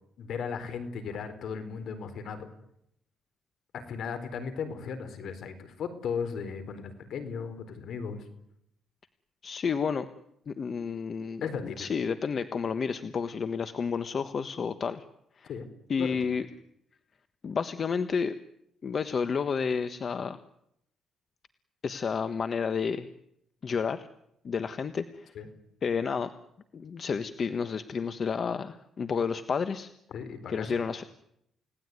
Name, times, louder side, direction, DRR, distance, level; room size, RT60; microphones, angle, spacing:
voice 1, 0.2-2.5 3.7-8.3 11.4-11.9 15.5-15.7 16.0-16.3 25.3-25.5 30.1-30.8, left 6 dB, 65° left, 10 dB, 4.3 m, -36 dB
voice 2, 9.4-10.0 10.5-15.0 15.4-15.5 15.9-16.5 17.4-18.3 18.8-20.4 21.8-23.1 23.6-24.1 24.4-25.3 25.8-26.3 26.7-29.9 30.5-31.0, left 6 dB, 45° left, 11 dB, 1.3 m, -31 dB
29.5 x 18.0 x 9.5 m, 0.78 s
cardioid pair, 110°, 0 cm